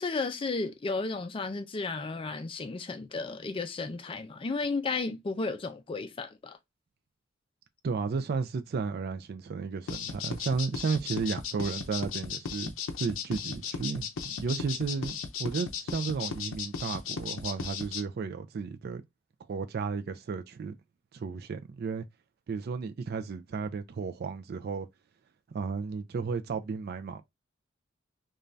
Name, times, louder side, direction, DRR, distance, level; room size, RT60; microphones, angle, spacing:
voice 1, 0.0-6.6, left 3 dB, 25° left, 0.4 m, -33 dB
voice 2, 7.8-19.0 19.5-20.7 21.1-22.0 22.5-24.9 25.5-27.2, right 5 dB, 55° right, 0.4 m, -33 dB
sound 1, 9.9-18.0, left 6 dB, 80° left, 0.5 m, -36 dB
2.5 x 2.3 x 3.1 m
head